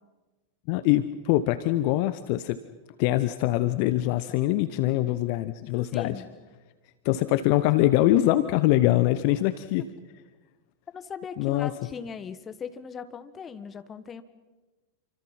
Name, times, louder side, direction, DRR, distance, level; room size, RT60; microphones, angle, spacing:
voice 1, 0.7-2.6 3.0-6.1 7.0-9.9 11.4-11.7, left 15 dB, 45° left, 13 dB, 1.0 m, -23 dB
voice 2, 5.9-6.3 10.9-14.2, left 6 dB, 20° left, 12 dB, 1.5 m, -39 dB
28.5 x 25.0 x 5.8 m, 1.2 s
figure-of-eight pair, 90°, 0 cm